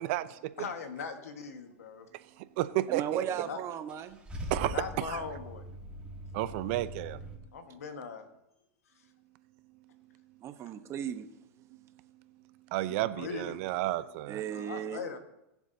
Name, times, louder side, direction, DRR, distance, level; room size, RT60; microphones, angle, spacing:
voice 1, 0.0-0.5 2.6-3.2 4.5-5.2 6.3-7.2 12.7-14.4, right 16 dB, 60° right, 14 dB, 0.6 m, -32 dB
voice 2, 0.6-2.1 3.1-3.6 4.5-5.6 7.5-8.3 12.9-13.6 14.5-15.2, left 5 dB, 85° left, 6 dB, 1.5 m, -40 dB
voice 3, 2.9-4.2 10.4-11.2 14.3-15.0, right 9 dB, 35° right, 9 dB, 1.0 m, -36 dB
Car / Engine starting / Idling, 3.9-7.4, right 1 dB, 15° right, 2.4 m, -41 dB
21.0 x 7.2 x 2.8 m, 0.89 s
hypercardioid pair, 110°, 8 cm